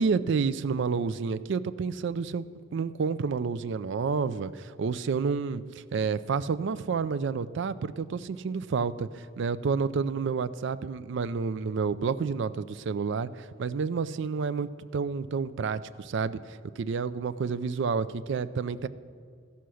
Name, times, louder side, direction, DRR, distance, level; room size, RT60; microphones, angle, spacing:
voice 1, 0.0-2.4 2.7-5.6 5.9-18.9, right 5 dB, 60° right, 14 dB, 0.4 m, -29 dB
15.0 x 5.7 x 6.3 m, 2.2 s
head